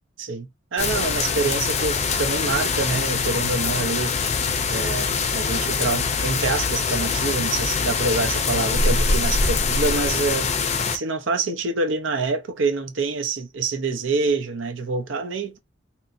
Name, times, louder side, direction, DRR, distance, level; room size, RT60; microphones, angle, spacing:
voice 1, 0.2-4.1 4.7-10.5 10.9-15.6, right 3 dB, 90° right, 0.7 m, -26 dB
sound 1, 0.8-11.0, left 4 dB, 35° left, 0.4 m, -23 dB
2.8 x 2.7 x 2.5 m
head